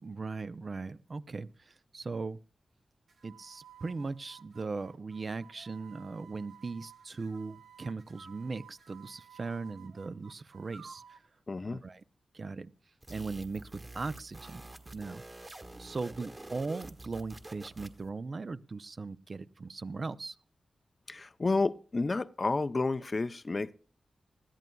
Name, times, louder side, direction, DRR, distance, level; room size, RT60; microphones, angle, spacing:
voice 1, 0.0-2.4 3.2-11.2 11.7-12.0 12.3-12.7 13.1-14.7 14.9-20.4, right 4 dB, 50° right, 0.5 m, -39 dB
sound 1, 3.1-11.3, right 8 dB, 80° right, 0.9 m, -55 dB
voice 2, 11.5-11.8 21.1-23.7, left 3 dB, 45° left, 0.5 m, -31 dB
sound 2, 13.0-18.1, right 2 dB, 35° right, 1.5 m, -48 dB
20.0 x 14.0 x 2.3 m
cardioid pair, 50°, 0 cm